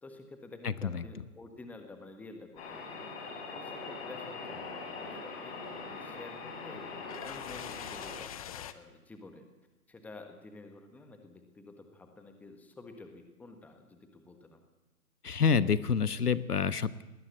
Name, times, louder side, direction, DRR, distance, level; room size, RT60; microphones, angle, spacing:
voice 1, 0.0-3.1 3.5-5.5 5.9-9.5 9.9-14.6, left 3 dB, 5° left, 6 dB, 1.4 m, -50 dB
sound 1, 2.6-8.2, left 4 dB, 40° left, 6.3 m, -42 dB
sound 2, 5.6-8.7, left 10 dB, 25° left, 0.8 m, -46 dB
voice 2, 15.2-17.0, left 6 dB, 80° left, 16 dB, 1.3 m, -27 dB
19.5 x 18.0 x 7.9 m, 1.1 s
figure-of-eight pair, 140°, 45 cm